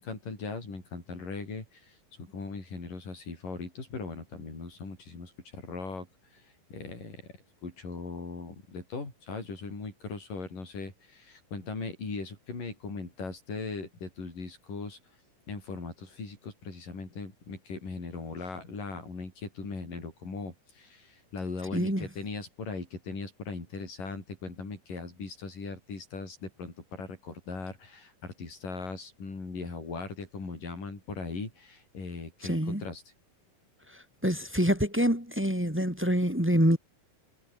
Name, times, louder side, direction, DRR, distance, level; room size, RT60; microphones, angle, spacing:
voice 1, 0.0-15.2 15.5-33.0, left 4 dB, 65° left, 8.8 m, -39 dB
voice 2, 21.7-22.0 32.4-32.8 33.9-36.8, equal, 5° right, 1.5 m, -26 dB
omnidirectional pair, 4.0 m